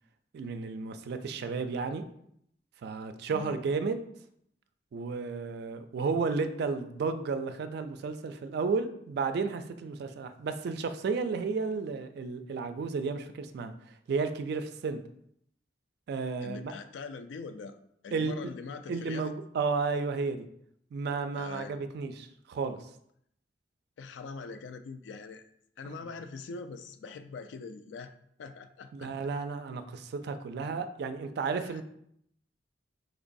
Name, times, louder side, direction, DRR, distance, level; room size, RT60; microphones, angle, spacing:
voice 1, 0.3-2.0 2.8-4.0 4.9-13.7 14.1-15.0 16.1-16.7 18.1-18.3 18.9-20.4 20.9-22.8 25.8-26.0 28.9-31.8, right 4 dB, 60° right, 10 dB, 0.3 m, -32 dB
voice 2, 16.4-17.8 18.0-19.3 21.4-21.8 24.0-25.5 25.8-29.1 31.6-31.8, left 4 dB, 80° left, 9 dB, 0.3 m, -43 dB
4.3 x 3.0 x 2.6 m, 0.72 s
head